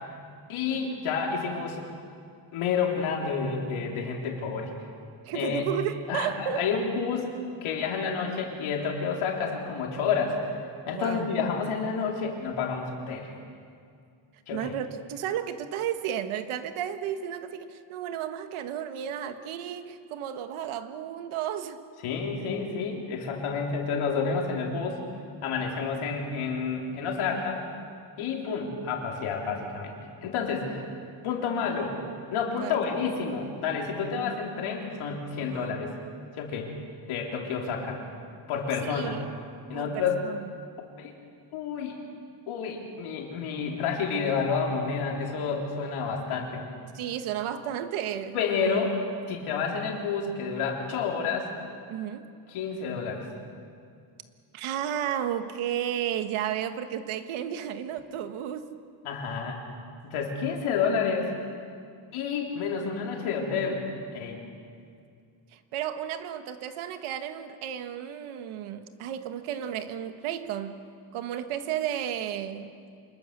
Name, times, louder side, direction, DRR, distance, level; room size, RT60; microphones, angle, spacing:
voice 1, 0.5-1.8 2.5-4.7 5.3-5.6 6.1-7.3 7.6-10.4 10.9-13.3 14.5-14.7 22.0-25.0 25.4-27.6 28.2-29.9 30.2-30.9 31.2-32.0 32.3-35.9 36.4-36.7 37.1-38.0 38.5-39.2 39.7-40.2 41.0-41.1 41.5-42.0 42.5-46.6 48.3-48.9 49.3-51.5 52.5-53.3 59.0-59.6 60.0-61.3 62.1-63.8 64.1-64.4, left 5 dB, 90° left, 0 dB, 3.7 m, -29 dB
voice 2, 5.3-6.7 10.9-11.3 14.5-21.8 32.6-32.8 35.4-35.7 38.8-39.3 39.7-40.4 46.9-48.4 48.6-48.7 51.9-52.3 54.5-58.7 65.5-70.8 71.1-72.8, right 10 dB, 85° right, 9 dB, 1.6 m, -33 dB
26.5 x 21.5 x 6.7 m, 2.3 s
cardioid pair, 170°, 48 cm